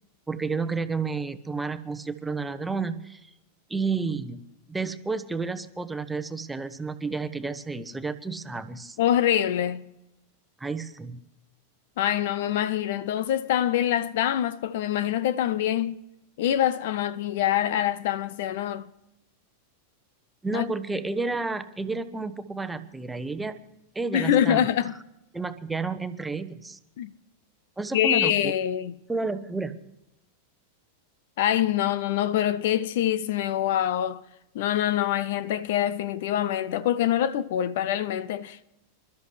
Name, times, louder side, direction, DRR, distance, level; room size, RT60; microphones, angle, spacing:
voice 1, 0.3-3.3 3.7-4.4 4.7-9.0 10.6-11.2 20.4-23.6 23.9-24.7 25.3-26.8 27.8-28.6 29.1-29.8, right 4 dB, 10° right, 1.0 m, -31 dB
voice 2, 9.0-9.9 12.0-16.0 16.4-18.9 20.5-20.6 24.1-24.9 27.0-27.1 27.9-29.0 31.4-34.2 34.5-38.6, left 11 dB, 55° left, 0.6 m, -25 dB
27.5 x 13.0 x 3.3 m
figure-of-eight pair, 90°, 0 cm